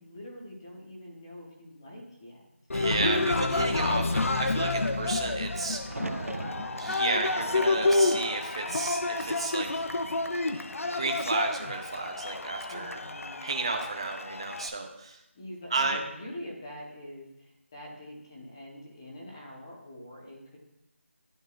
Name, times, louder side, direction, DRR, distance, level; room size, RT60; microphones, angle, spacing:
voice 1, 0.0-2.4 5.8-6.9 12.7-13.6 15.3-20.6, left 1 dB, 20° left, -3 dB, 1.0 m, -45 dB
Cheering, 2.7-14.7, left 2 dB, 80° left, 0.5 m, -29 dB
voice 2, 2.7-5.8 6.8-9.9 10.6-10.7 10.9-13.0 13.4-15.2 15.7-16.0, right 3 dB, 20° right, 4 dB, 0.5 m, -32 dB
sound 1, 5.9-9.9 10.3-11.0 12.9-13.4, right 3 dB, 85° right, 0.5 m, -42 dB
11.0 x 3.9 x 2.4 m, 0.84 s
figure-of-eight pair, 175°, 7 cm